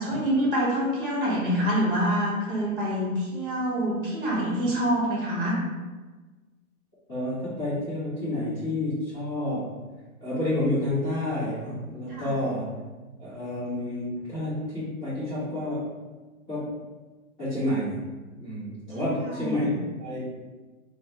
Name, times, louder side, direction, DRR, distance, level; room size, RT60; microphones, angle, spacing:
voice 1, 0.0-5.6 12.1-12.3 19.0-19.7, equal, 35° right, -4 dB, 1.1 m, -26 dB
voice 2, 7.1-9.7 10.2-12.8 13.2-15.9 16.5-16.8 17.4-18.0 18.3-19.7 20.0-20.2, left 1 dB, 10° left, -18 dB, 0.5 m, -29 dB
4.4 x 2.0 x 2.7 m, 1.3 s
figure-of-eight pair, 120°, 44 cm